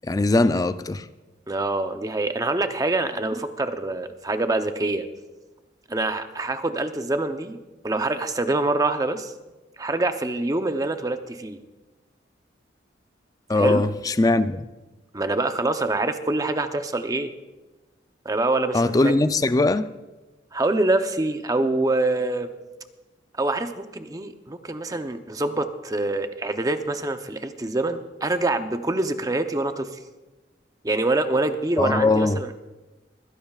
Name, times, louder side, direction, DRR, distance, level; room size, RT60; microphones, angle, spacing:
voice 1, 0.0-1.0 13.5-14.7 18.7-19.9 31.8-32.4, left 2 dB, 20° left, 12 dB, 0.4 m, -20 dB
voice 2, 1.5-5.1 5.9-9.3 9.8-11.6 13.5-13.8 15.1-17.3 18.2-19.1 20.5-22.5 23.4-29.9 30.8-32.5, right 2 dB, 20° right, 8 dB, 0.7 m, -25 dB
21.0 x 16.0 x 2.4 m, 1.1 s
head